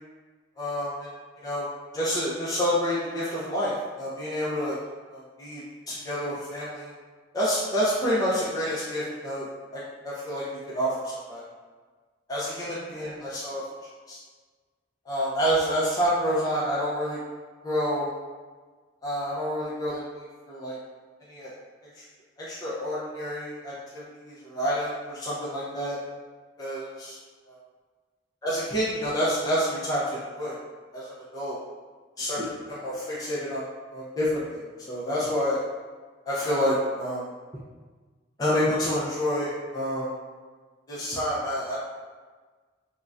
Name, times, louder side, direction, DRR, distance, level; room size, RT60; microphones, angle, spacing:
voice 1, 0.6-1.1 1.4-1.7 1.9-4.8 5.1-5.6 5.9-6.9 7.3-11.4 12.3-13.6 14.1-14.2 15.1-17.2 17.6-18.1 19.0-20.8 21.3-21.5 22.0-22.1 22.4-26.0 26.6-27.2 27.5-27.6 28.4-30.6 30.9-31.6 32.2-33.6 33.9-34.6 34.9-35.6 36.3-37.3 38.4-40.1 40.9-41.7, equal, 20° left, -9 dB, 0.5 m, -28 dB
3.7 x 2.1 x 2.4 m, 1.4 s
head